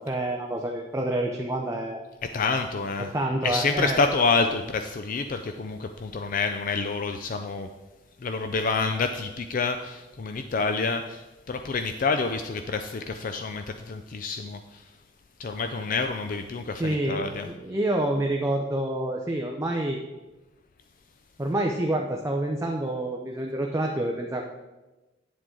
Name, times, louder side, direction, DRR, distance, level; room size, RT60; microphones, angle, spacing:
voice 1, 0.1-2.0 3.1-4.0 16.8-20.0 21.4-24.4, right 1 dB, 15° right, 1 dB, 0.6 m, -27 dB
voice 2, 2.3-3.1 3.4-7.7 8.2-14.9 15.4-17.5, left 4 dB, 45° left, 7 dB, 0.4 m, -28 dB
9.8 x 7.4 x 3.8 m, 1.1 s
head